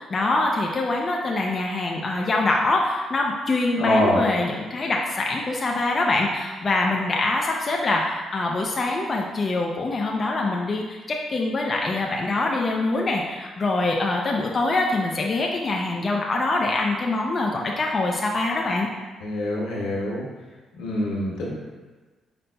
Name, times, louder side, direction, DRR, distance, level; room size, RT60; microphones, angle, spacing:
voice 1, 0.0-18.9, left 2 dB, 35° left, -1 dB, 0.5 m, -24 dB
voice 2, 3.8-4.2 19.2-20.3 20.8-21.5, left 1 dB, 90° left, -4 dB, 1.1 m, -24 dB
5.4 x 3.9 x 2.2 m, 1.3 s
cardioid pair, 90°, 0 cm